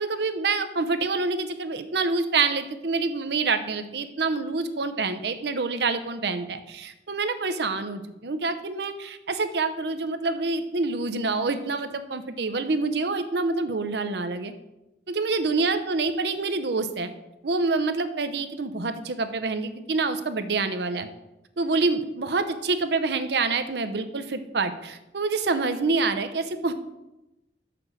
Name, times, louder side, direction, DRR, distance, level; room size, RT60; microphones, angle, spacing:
voice 1, 0.0-14.5 15.1-17.1 17.4-21.1 21.6-26.7, right 3 dB, 65° right, 10 dB, 0.7 m, -27 dB
6.1 x 5.9 x 6.5 m, 0.94 s
head